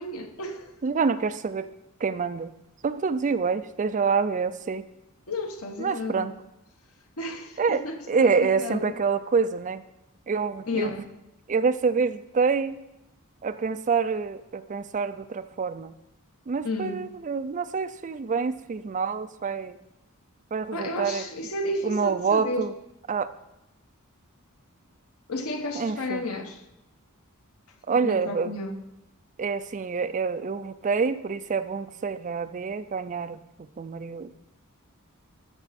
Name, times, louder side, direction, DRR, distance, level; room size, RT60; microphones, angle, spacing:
voice 1, 0.0-0.7 5.3-6.3 7.2-9.0 10.7-11.1 16.6-17.0 20.7-22.7 25.3-26.6 27.9-28.8, left 1 dB, 80° left, 1.1 m, -32 dB
voice 2, 0.8-1.7 2.0-2.5 2.8-4.8 5.8-6.3 7.6-7.8 8.1-9.8 10.3-10.9 11.5-12.8 13.4-15.9 16.5-19.7 20.5-21.2 21.8-22.7 23.1-23.3 25.8-26.2 27.9-28.5 29.4-33.4 33.8-34.3, right 5 dB, 35° right, 0.4 m, -26 dB
13.5 x 6.2 x 4.2 m
head